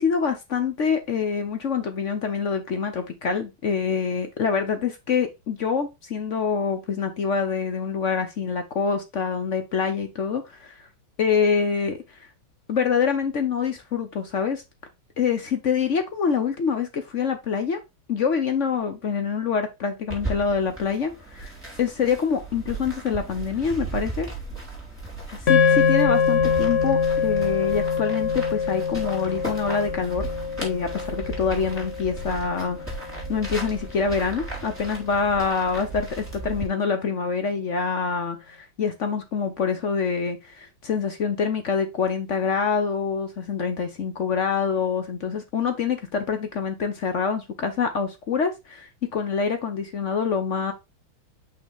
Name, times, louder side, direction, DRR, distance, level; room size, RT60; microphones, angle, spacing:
voice 1, 0.0-10.7 11.2-12.0 12.7-14.6 15.2-17.8 18.1-21.5 21.8-24.3 25.3-30.3 30.6-32.8 33.3-50.7, left 6 dB, 55° left, 7 dB, 0.8 m, -25 dB
sound 1, 20.1-36.7, right 3 dB, 5° right, 3.0 m, -36 dB
sound 2, 25.5-33.8, left 6 dB, 40° left, 1.2 m, -24 dB
5.8 x 4.9 x 3.5 m, 0.22 s
omnidirectional pair, 2.3 m